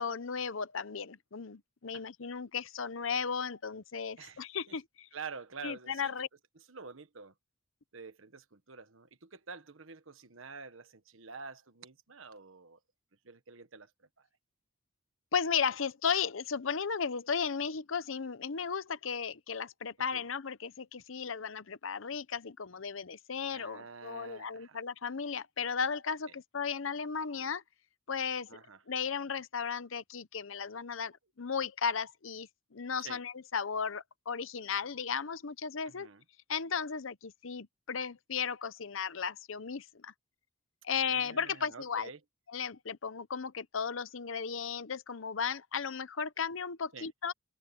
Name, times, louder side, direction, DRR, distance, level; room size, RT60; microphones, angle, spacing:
voice 1, 0.0-5.1 5.6-6.3 15.3-27.6 28.1-28.5 28.9-36.1 36.5-40.1 40.8-42.1 42.5-47.3, left 6 dB, 70° left, 0.8 m, -35 dB
voice 2, 4.2-4.7 5.1-6.1 6.5-7.3 7.9-12.8 13.2-13.9 14.2-14.3 20.1-20.3 23.5-24.8 26.3-26.4 28.5-28.8 33.0-33.2 35.8-36.2 40.9-42.2 46.9-47.1, right 5 dB, 70° right, 1.3 m, -48 dB
head